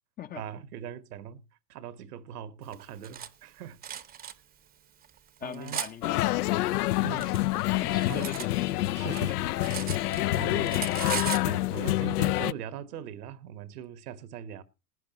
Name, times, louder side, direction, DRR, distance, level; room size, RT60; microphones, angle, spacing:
voice 1, 0.3-1.4 1.7-3.8 5.4-5.8 7.0-7.3 8.1-8.3 8.9-9.6 10.0-10.9 11.3-14.6, right 9 dB, 75° right, 1.4 m, -41 dB
Cutlery silverware, 2.7-3.3 3.8-4.3 5.0-5.9 6.8-8.5 8.8-10.4 10.6-11.5, right 9 dB, 20° right, 0.8 m, -37 dB
voice 2, 5.4-6.5 7.8-8.8, left 9 dB, 20° left, 0.6 m, -39 dB
sound 1, 6.0-12.5, left 17 dB, 75° left, 0.6 m, -27 dB
19.5 x 9.9 x 2.9 m
hypercardioid pair, 115°, 46 cm